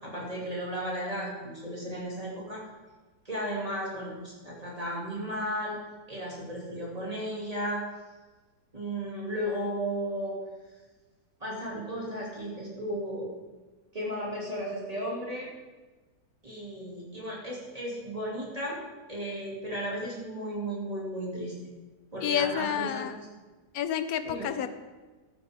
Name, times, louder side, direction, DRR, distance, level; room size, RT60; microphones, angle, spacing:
voice 1, 0.0-2.6 3.2-5.8 6.1-7.8 8.7-10.4 11.4-13.3 13.9-15.5 16.4-18.8 19.1-21.5 22.1-23.1 24.2-24.5, equal, 20° right, -5 dB, 2.9 m, -34 dB
voice 2, 22.2-23.2 23.7-24.7, left 9 dB, 65° left, 11 dB, 1.2 m, -29 dB
13.5 x 13.0 x 3.7 m, 1.3 s
omnidirectional pair, 1.7 m